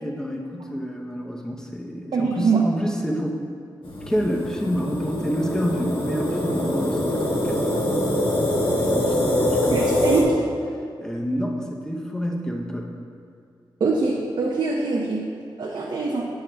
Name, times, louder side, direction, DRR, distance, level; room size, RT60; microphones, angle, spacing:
voice 1, 0.0-3.4 4.1-7.9 8.8-9.9 11.0-12.9, equal, 5° left, 0 dB, 0.7 m, -28 dB
voice 2, 2.1-2.7 9.7-10.4 13.8-15.3 15.6-16.3, right 3 dB, 70° right, -3 dB, 0.7 m, -23 dB
sound 1, 3.8-10.2, left 1 dB, 90° left, 1.3 m, -24 dB
9.9 x 7.7 x 2.3 m, 2.3 s
wide cardioid pair, 165°, 8 cm